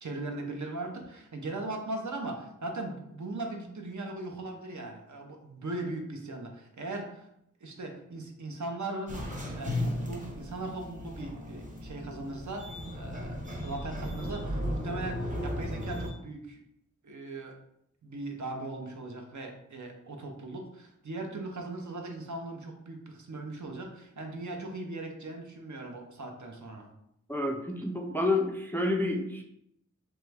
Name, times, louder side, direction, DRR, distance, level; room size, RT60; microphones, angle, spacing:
voice 1, 0.0-7.3 7.6-16.6 17.0-17.6 18.0-26.9, right 2 dB, 65° right, 3 dB, 0.6 m, -39 dB
sound 1, 9.1-16.1, left 1 dB, 25° right, 0.7 m, -36 dB
voice 2, 27.3-29.4, left 2 dB, 5° left, 3 dB, 0.3 m, -29 dB
3.0 x 2.2 x 3.3 m, 0.76 s
wide cardioid pair, 55°, 32 cm